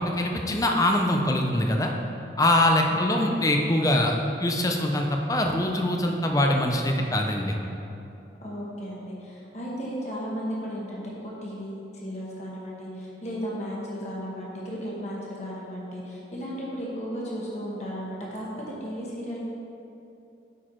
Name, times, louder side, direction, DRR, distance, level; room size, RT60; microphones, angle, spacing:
voice 1, 0.1-1.9 2.4-4.1 4.4-7.6, left 1 dB, 20° left, 2 dB, 0.5 m, -23 dB
voice 2, 2.9-3.5 8.4-18.5 18.8-19.4, equal, 40° left, -5 dB, 1.3 m, -35 dB
8.5 x 4.6 x 4.5 m, 2.8 s
head